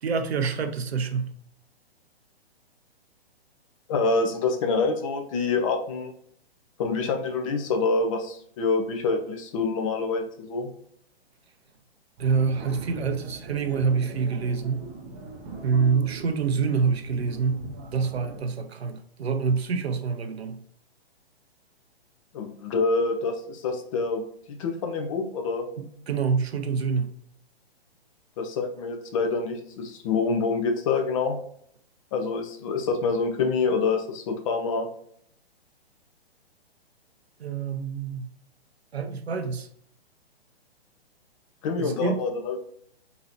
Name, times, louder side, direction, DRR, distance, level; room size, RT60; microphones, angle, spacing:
voice 1, 0.0-1.3 12.2-14.8 15.6-20.6 25.8-27.1 37.4-38.3 38.9-39.7 41.8-42.2, right 5 dB, 75° right, 7 dB, 0.6 m, -26 dB
voice 2, 3.9-6.1 6.8-10.7 22.3-24.2 24.5-25.7 28.4-31.4 32.1-34.9 41.6-42.6, left 4 dB, 30° left, 4 dB, 0.6 m, -26 dB
sound 1, 12.2-18.4, right 2 dB, 20° right, 0.5 m, -41 dB
3.9 x 2.7 x 2.7 m, 0.65 s
figure-of-eight pair, 125°, 32 cm